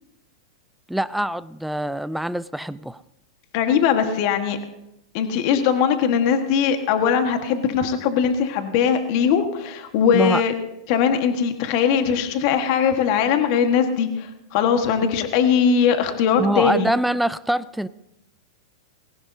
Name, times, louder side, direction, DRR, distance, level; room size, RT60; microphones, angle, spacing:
voice 1, 0.9-3.0 10.1-10.4 16.4-17.9, right 1 dB, ahead, 16 dB, 0.4 m, -24 dB
voice 2, 3.5-4.6 5.1-10.5 10.9-16.9, left 7 dB, 55° left, 7 dB, 1.4 m, -20 dB
19.5 x 17.0 x 2.7 m, 0.87 s
hypercardioid pair, 120°, 3 cm